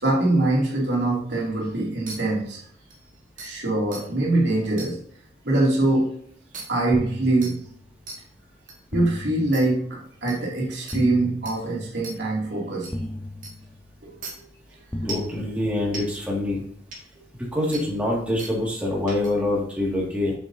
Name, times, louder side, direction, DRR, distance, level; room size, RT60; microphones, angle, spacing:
voice 1, 0.0-2.6 3.4-5.0 5.4-6.1 6.7-7.6 8.9-12.9 14.0-14.4, right 2 dB, 75° right, -4 dB, 2.5 m, -23 dB
sound 1, 2.1-2.2 2.9-3.0 3.4-3.5 3.9-4.0 4.8-4.9 6.5-6.6 7.4-7.5 8.1-8.2 8.7-8.8 9.5-9.6 10.3-10.4 10.9-11.0 11.5-11.6 12.0-12.2 12.8-12.9 13.4-13.5 14.2-14.3 15.1-15.3 15.9-16.0 16.9-17.0 17.7-17.8 18.4-18.5 19.1-19.3, right 2 dB, 45° right, 1.8 m, -36 dB
sound 2, 6.9-8.1 8.9-10.1 10.9-12.1 12.9-14.1 14.9-16.1, left 1 dB, 10° left, 0.6 m, -36 dB
voice 2, 15.0-16.6 17.4-20.3, left 1 dB, 5° right, -5 dB, 2.0 m, -25 dB
7.8 x 7.3 x 2.7 m, 0.64 s
head